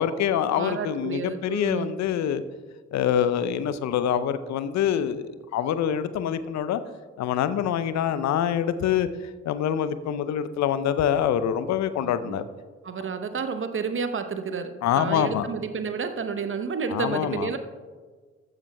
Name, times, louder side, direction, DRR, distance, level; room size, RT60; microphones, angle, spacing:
voice 1, 0.0-2.4 2.9-6.8 7.2-9.1 9.4-12.4 14.8-15.5 16.9-17.5, left 9 dB, 50° left, 13 dB, 0.6 m, -25 dB
voice 2, 0.5-1.9 12.0-12.5 12.8-17.6, right 5 dB, 35° right, 9 dB, 0.8 m, -31 dB
14.5 x 9.7 x 2.2 m, 1.5 s
figure-of-eight pair, 40°, 37 cm